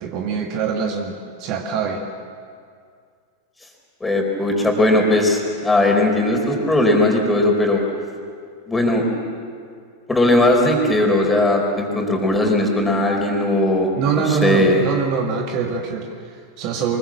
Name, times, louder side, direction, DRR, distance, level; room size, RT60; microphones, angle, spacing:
voice 1, 0.0-2.0 14.0-17.0, right 6 dB, 40° right, 3 dB, 1.8 m, -24 dB
voice 2, 4.0-7.8 8.7-9.0 10.1-13.9 14.1-14.8, left 1 dB, 10° left, 1 dB, 4.5 m, -18 dB
24.5 x 22.0 x 7.6 m, 2.2 s
figure-of-eight pair, 90°, 0 cm